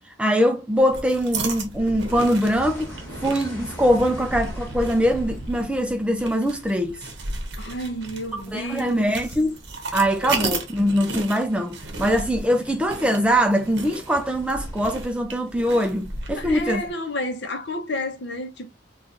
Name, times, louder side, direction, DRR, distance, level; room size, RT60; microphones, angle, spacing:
voice 1, 0.2-7.0 8.5-9.6 9.9-16.8, equal, 5° right, 0.3 m, -22 dB
sound 1, 0.8-16.9, right 3 dB, 60° right, 0.8 m, -34 dB
sound 2, 1.0-14.9, equal, 10° left, 1.4 m, -43 dB
voice 2, 7.6-9.2 10.3-10.5 16.3-18.7, left 1 dB, 60° left, 0.7 m, -31 dB
4.0 x 2.4 x 2.5 m
head